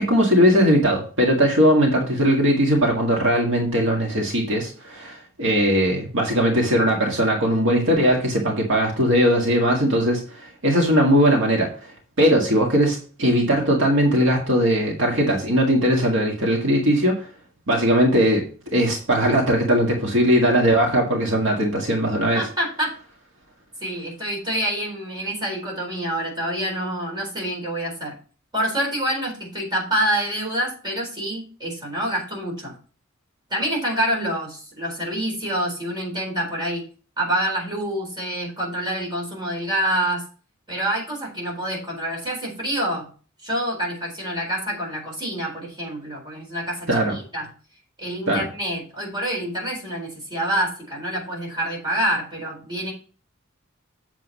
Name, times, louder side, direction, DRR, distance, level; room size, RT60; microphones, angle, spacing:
voice 1, 0.0-17.3 17.7-22.4 46.9-47.2 48.3-48.5, equal, 65° right, -1 dB, 1.9 m, -19 dB
voice 2, 22.3-23.0 23.8-28.1 28.5-32.7 33.5-36.8 37.2-40.2 40.7-43.1 43.4-47.5 48.0-52.9, right 1 dB, 20° right, -2 dB, 4.3 m, -27 dB
8.1 x 7.3 x 4.2 m, 0.39 s
head